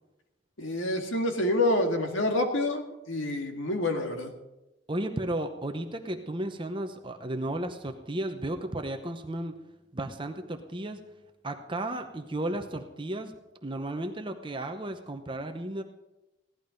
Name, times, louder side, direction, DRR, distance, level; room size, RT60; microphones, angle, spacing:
voice 1, 0.6-4.3, left 1 dB, 75° left, 4 dB, 2.0 m, -27 dB
voice 2, 4.9-9.6 9.9-11.0 11.4-13.3 13.6-15.8, right 1 dB, 25° right, 6 dB, 0.8 m, -34 dB
16.5 x 11.0 x 5.2 m, 0.97 s
head